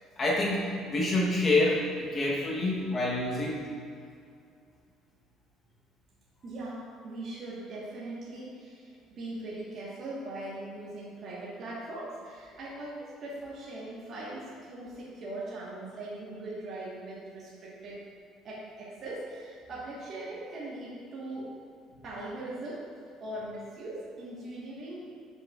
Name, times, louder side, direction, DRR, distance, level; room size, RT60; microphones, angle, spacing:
voice 1, 0.2-3.7, left 2 dB, 25° left, -4 dB, 1.0 m, -27 dB
voice 2, 6.4-18.0 18.4-21.5 22.0-22.9 23.2-25.1, right 2 dB, 45° right, -7 dB, 1.4 m, -40 dB
11.5 x 5.5 x 2.4 m, 2.4 s
cardioid pair, 140°, 0 cm